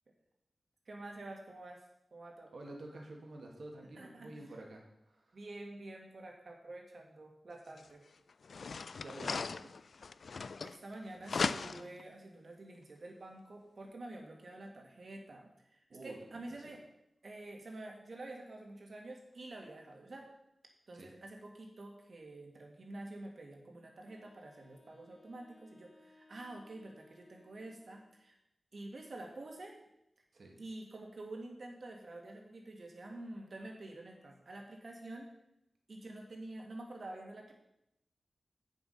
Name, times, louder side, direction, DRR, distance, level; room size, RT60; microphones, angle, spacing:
voice 1, 0.9-1.8 2.1-2.5 4.0-4.4 5.3-8.0 10.6-16.8 17.2-20.3 20.9-28.4 28.7-29.8 30.6-35.3 35.9-37.5, right 2 dB, 60° right, 1 dB, 1.9 m, -48 dB
voice 2, 2.5-5.4 9.0-9.7 15.9-16.2 16.6-16.8 20.9-21.1 30.3-30.6, right 2 dB, 75° right, 0 dB, 2.0 m, -49 dB
sound 1, 7.8-7.9 8.4-10.9 11.2-12.0, left 4 dB, 80° left, 0.3 m, -37 dB
Wind instrument woodwind instrument, 24.0-28.2, left 2 dB, 5° left, 1.3 m, -64 dB
8.5 x 7.1 x 5.6 m, 0.84 s
wide cardioid pair, 115°, 0 cm